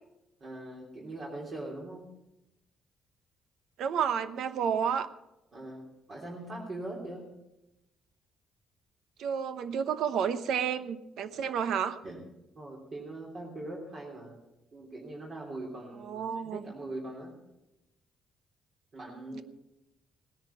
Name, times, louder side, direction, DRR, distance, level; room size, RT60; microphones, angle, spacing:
voice 1, 0.4-2.1 5.5-7.2 12.0-12.2 12.5-14.4 14.7-17.3 18.9-19.4, right 2 dB, 40° right, -3 dB, 3.3 m, -41 dB
voice 2, 3.8-5.1 9.2-12.0 16.0-16.6 19.3-19.4, right 7 dB, 75° right, 12 dB, 0.9 m, -30 dB
18.0 x 10.5 x 5.7 m, 0.91 s
cardioid pair, 130°, 0 cm